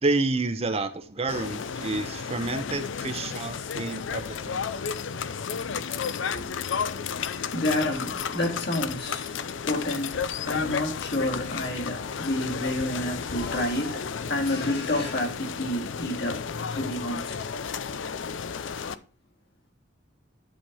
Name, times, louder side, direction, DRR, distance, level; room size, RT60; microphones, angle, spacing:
voice 1, 0.0-4.6, right 3 dB, 35° right, 0.7 m, -29 dB
sound 1, 1.3-19.0, left 6 dB, 75° left, 0.5 m, -33 dB
voice 2, 7.2-9.3 9.6-16.4 16.7-17.4, left 1 dB, 60° left, 2.7 m, -29 dB
10.5 x 4.4 x 4.7 m
head